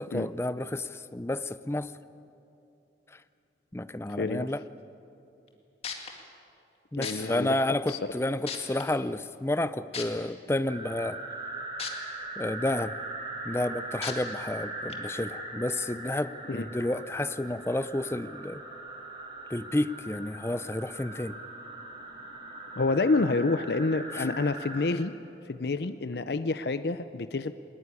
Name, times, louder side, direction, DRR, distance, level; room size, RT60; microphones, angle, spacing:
voice 1, 0.0-1.9 3.1-3.2 3.7-4.6 6.9-11.2 12.4-12.9 13.4-18.6 19.5-21.3 24.1-24.3, left 1 dB, 15° left, 14 dB, 0.5 m, -31 dB
voice 2, 4.2-4.5 6.9-7.6 7.9-8.0 16.5-16.7 22.8-25.1 25.4-27.5, left 3 dB, 70° left, 11 dB, 0.6 m, -28 dB
sound 1, 5.5-5.6 5.8-6.1 7.0-7.1 7.9-8.0 8.5-8.8 9.9-10.0 11.8-11.9 12.4-12.5 14.0-14.1 14.9-15.0, left 7 dB, 35° left, 2.0 m, -34 dB
sound 2, 10.7-24.8, right 2 dB, 25° right, 4.1 m, -40 dB
20.5 x 20.0 x 9.8 m, 2.8 s
head